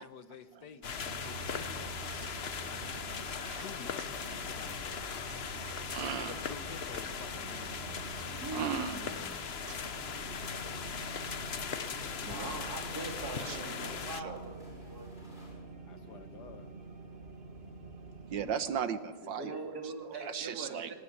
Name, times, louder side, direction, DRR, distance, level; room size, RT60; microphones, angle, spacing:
voice 1, 0.0-2.1 3.1-5.1 6.0-8.1 13.7-13.8 15.9-16.7, left 7 dB, 65° left, 12 dB, 1.6 m, -50 dB
sound 1, 0.8-14.2, left 6 dB, 45° left, 1.0 m, -39 dB
sound 2, 1.0-18.5, right 3 dB, 30° right, 2.0 m, -47 dB
voice 2, 2.1-3.6 5.3-6.4 8.0-9.0 9.3-10.6 13.4-13.6 13.9-14.4 15.7-15.8 18.3-19.9 20.2-20.9, right 7 dB, 80° right, 12 dB, 1.7 m, -40 dB
voice 3, 8.2-9.2 12.2-15.1 19.2-20.9, right 3 dB, 55° right, 2 dB, 4.2 m, -42 dB
sound 3, 9.0-15.6, left 1 dB, 25° left, 8.0 m, -61 dB
25.0 x 18.5 x 9.9 m, 1.4 s
omnidirectional pair, 2.0 m